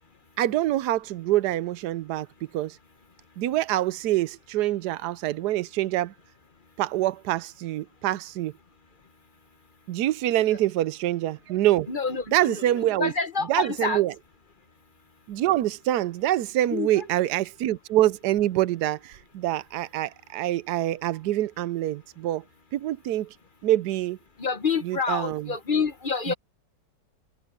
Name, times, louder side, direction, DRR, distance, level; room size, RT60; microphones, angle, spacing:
voice 1, 0.4-2.3 2.5-2.8 3.4-6.1 6.8-8.5 9.9-11.9 12.3-13.1 13.5-14.1 15.3-22.4 22.7-23.3 23.6-24.2 24.8-25.5 26.3-26.4, right 14 dB, 75° right, 1.2 m, -25 dB
voice 2, 11.9-14.0 16.7-17.1 24.4-26.3, left 5 dB, 35° left, 0.9 m, -28 dB
omnidirectional pair, 1.8 m